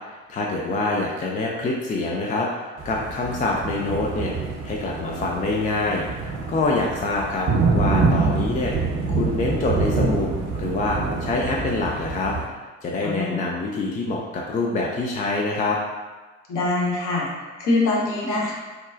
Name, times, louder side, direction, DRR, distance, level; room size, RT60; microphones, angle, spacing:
voice 1, 0.3-6.1 6.5-7.5 7.7-8.7 9.1-12.3 12.8-15.8, left 2 dB, 20° left, -1 dB, 0.4 m, -25 dB
Thunder, 2.8-12.5, right 4 dB, 40° right, 0.8 m, -26 dB
voice 2, 13.0-13.4 16.5-17.3 17.6-18.5, left 2 dB, 50° left, -4 dB, 1.0 m, -23 dB
3.7 x 2.3 x 2.5 m, 1.3 s
figure-of-eight pair, 55°, 39 cm